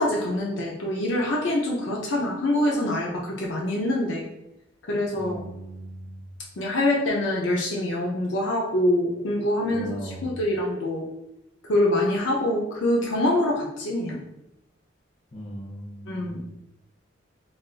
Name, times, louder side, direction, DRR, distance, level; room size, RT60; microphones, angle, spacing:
voice 1, 0.0-4.3 4.9-5.5 6.6-11.0 11.6-14.2 16.1-16.4, left 1 dB, 70° left, -2 dB, 0.5 m, -25 dB
voice 2, 5.1-6.2 9.7-10.3 15.3-16.4, equal, 30° left, -2 dB, 0.8 m, -38 dB
3.8 x 2.5 x 2.4 m, 0.87 s
head